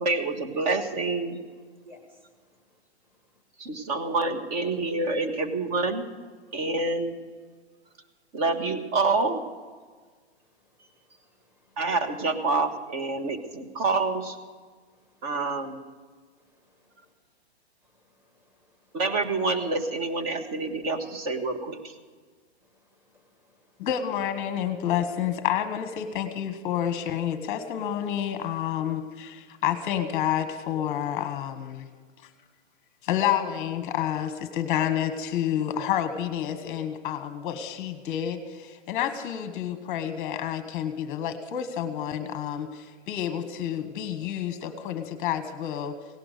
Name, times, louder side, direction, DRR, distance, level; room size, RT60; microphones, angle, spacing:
voice 1, 0.0-1.4 3.6-6.1 6.5-7.2 8.3-9.4 11.8-14.4 15.2-15.8 18.9-21.9, right 3 dB, 35° right, 7 dB, 1.6 m, -27 dB
voice 2, 1.7-3.4 7.8-7.9 10.4-11.8 14.9-15.3 16.4-17.1 17.8-19.0 22.6-23.9, left 1 dB, 5° right, 3 dB, 1.7 m, -61 dB
voice 3, 23.8-31.9 33.0-45.9, left 10 dB, 25° left, 9 dB, 1.1 m, -29 dB
17.5 x 11.0 x 6.6 m, 1.5 s
hypercardioid pair, 150°, 33 cm